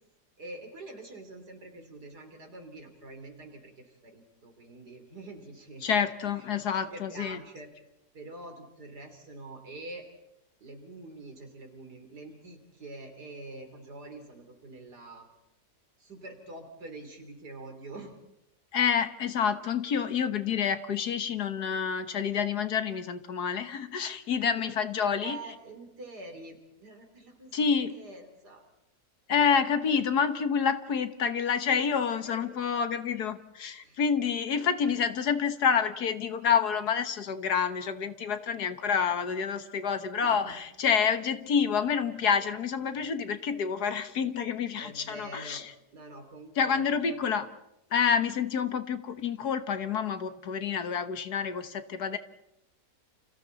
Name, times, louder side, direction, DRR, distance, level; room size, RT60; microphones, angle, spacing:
voice 1, 0.4-5.9 6.3-6.6 6.9-7.7 8.1-10.0 10.6-15.3 16.0-18.1 24.6-24.8 25.2-27.5 27.9-28.6 32.1-32.6 33.8-34.0 40.2-40.5 44.7-45.7 45.9-47.2, right 2 dB, 75° right, 4 dB, 4.1 m, -46 dB
voice 2, 5.8-7.4 18.7-25.4 27.5-27.9 29.3-45.6 46.6-47.5 47.9-52.2, left 6 dB, 70° left, 10 dB, 1.8 m, -28 dB
29.5 x 28.5 x 4.1 m, 0.84 s
omnidirectional pair, 1.8 m